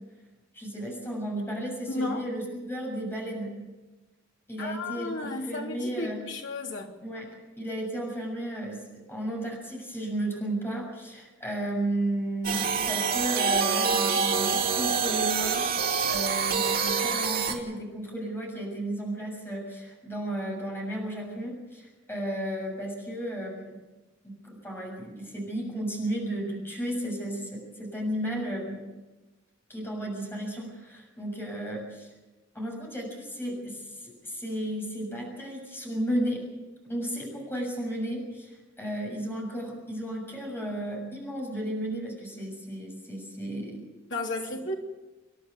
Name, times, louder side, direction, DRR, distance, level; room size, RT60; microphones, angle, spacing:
voice 1, 0.5-3.5 4.5-6.2 7.0-7.3 7.6-8.8 9.1-23.8 24.2-28.8 29.7-32.1 32.5-36.4 36.9-43.8, right 1 dB, 10° left, 6.8 m, -34 dB
voice 2, 1.9-2.2 4.6-6.9 44.1-44.7, left 2 dB, 65° left, 3.4 m, -33 dB
sound 1, 12.4-17.5, right 5 dB, 45° right, 2.6 m, -26 dB
28.0 x 11.0 x 9.5 m
head